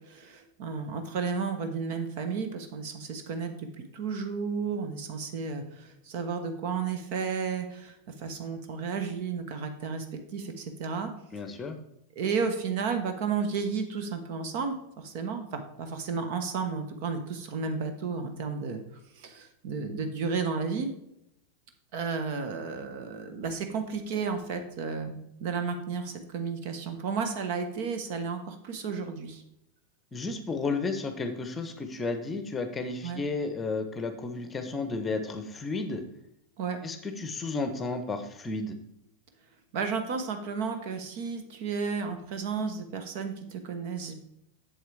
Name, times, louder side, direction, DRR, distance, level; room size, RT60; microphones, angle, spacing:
voice 1, 0.1-3.7 3.9-11.1 12.2-14.8 15.0-18.8 19.2-20.9 21.9-29.4 33.0-33.2 36.6-36.8 39.7-44.1, right 5 dB, 50° right, 7 dB, 1.1 m, -32 dB
voice 2, 11.3-11.8 30.1-36.0 36.8-38.7, left 3 dB, 20° left, 8 dB, 0.9 m, -32 dB
7.7 x 7.4 x 3.4 m, 0.82 s
figure-of-eight pair, 90°, 0 cm